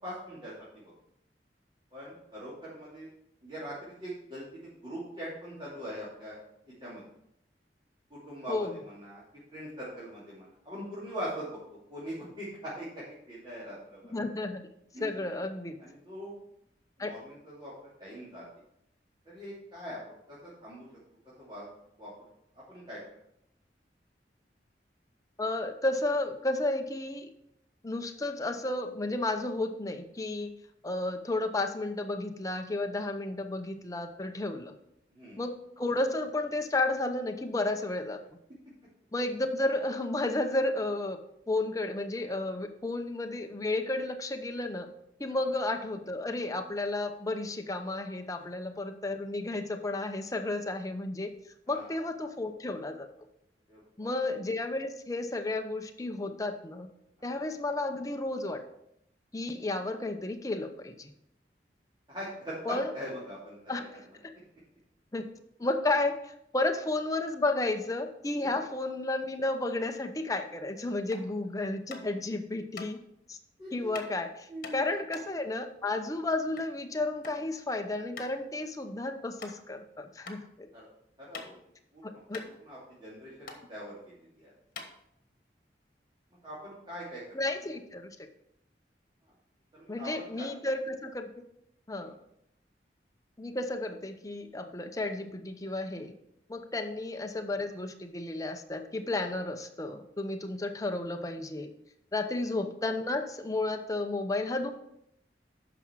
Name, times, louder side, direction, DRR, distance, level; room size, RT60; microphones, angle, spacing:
voice 1, 0.0-0.9 1.9-3.1 3.4-6.4 6.6-7.0 8.1-9.2 9.5-11.6 11.9-14.3 14.9-15.4 15.8-16.4 17.0-18.4 19.2-20.9 21.4-21.7 22.0-22.3 22.5-23.0 35.1-35.4 51.7-52.0 53.7-54.2 57.2-57.4 62.1-63.8 73.6-74.0 74.5-74.8 80.7-80.9 81.2-81.6 81.9-82.0 82.4-84.5 86.4-87.4 87.6-87.7 89.2-89.3 89.7-90.5 92.0-92.1, equal, 30° right, -9 dB, 2.9 m, -42 dB
voice 2, 14.1-14.7 15.0-15.8 17.0-17.1 25.4-27.3 27.8-30.5 30.8-34.7 35.4-38.2 39.1-41.2 41.5-44.9 45.2-51.3 51.7-53.1 54.0-56.9 57.2-58.6 59.3-61.1 62.7-62.9 63.7-63.8 64.2-64.3 65.1-65.3 65.6-73.0 73.3-73.4 73.7-80.7 82.0-82.4 87.3-88.3 89.9-91.4 91.9-92.1 93.4-96.1 96.5-101.7 102.1-104.7, left 2 dB, 20° left, 5 dB, 0.7 m, -32 dB
sound 1, 71.0-71.3 71.9-72.2 72.7-72.9 73.9-74.1 74.6-76.7 77.0-77.4 77.7-77.8 78.2-78.4 78.8-78.9 79.4-79.5 80.2-80.4 80.8-81.8 82.0-82.1 82.3-83.1 83.4-83.6 84.2-84.3 84.7-85.4, left 4 dB, 50° left, 1.4 m, -44 dB
9.6 x 6.1 x 4.6 m, 0.77 s
head